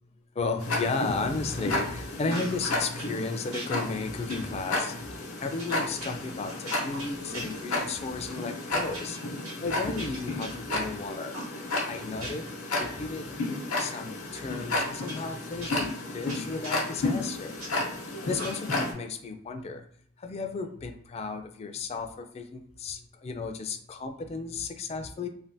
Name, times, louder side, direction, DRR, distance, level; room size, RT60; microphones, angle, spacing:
voice 1, 0.4-5.1 5.4-9.2 9.6-11.4 11.9-13.3 13.8-17.6 18.2-19.8 20.2-25.3, left 3 dB, 30° left, 6 dB, 0.3 m, -34 dB
Tick-tock, 0.6-18.9, left 2 dB, 80° left, 0.7 m, -33 dB
sound 1, 1.4-1.9 2.2-3.2 3.5-8.0 8.3-8.5 8.8-10.9 11.3-12.6 13.0-14.0 14.3-14.4 15.0-17.7 18.3-18.9, right 1 dB, 85° right, 1.4 m, -43 dB
3.2 x 2.1 x 2.6 m, 0.64 s
head